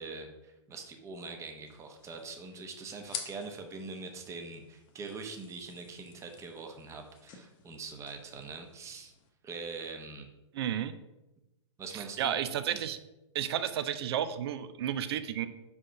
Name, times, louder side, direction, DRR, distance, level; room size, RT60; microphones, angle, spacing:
voice 1, 0.0-9.1 9.4-10.3 11.8-12.4 12.7-12.8, right 4 dB, 20° right, 5 dB, 0.9 m, -43 dB
sound 1, 1.7-9.3, left 7 dB, 30° left, 1.0 m, -49 dB
voice 2, 10.5-11.0 11.9-13.0 13.3-15.5, right 10 dB, 55° right, 12 dB, 0.6 m, -32 dB
5.0 x 4.9 x 5.0 m, 0.97 s
hypercardioid pair, 115°, 16 cm